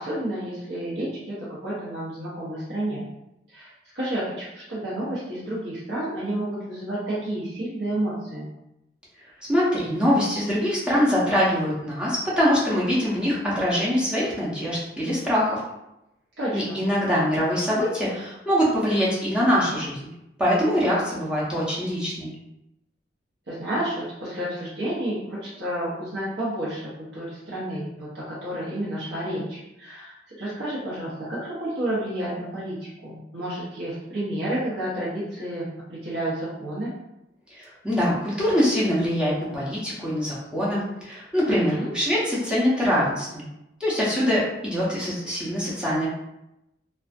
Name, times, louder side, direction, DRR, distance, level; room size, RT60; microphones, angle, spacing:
voice 1, 0.0-3.1 3.5-8.5 16.4-16.8 23.5-36.9 41.5-41.9, right 1 dB, 70° right, -8 dB, 0.7 m, -30 dB
voice 2, 9.5-15.6 16.5-20.0 20.4-22.3 37.5-43.4 43.8-46.1, equal, 5° right, -8 dB, 0.6 m, -23 dB
2.4 x 2.2 x 2.5 m, 0.88 s
head